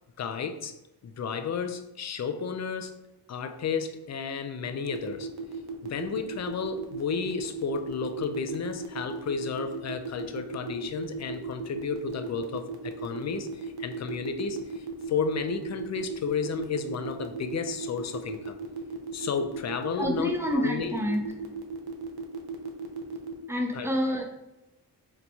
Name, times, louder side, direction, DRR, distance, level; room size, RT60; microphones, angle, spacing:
voice 1, 0.2-0.7 1.0-2.9 3.3-5.3 5.9-18.6 19.1-20.9 23.7-24.0, left 5 dB, 45° left, 8 dB, 0.4 m, -32 dB
sound 1, 4.9-23.3, right 5 dB, 65° right, 0.6 m, -36 dB
voice 2, 20.0-21.2 23.5-24.2, equal, 5° right, 1 dB, 0.6 m, -28 dB
3.0 x 2.2 x 4.0 m, 0.97 s
cardioid pair, 75°, 40 cm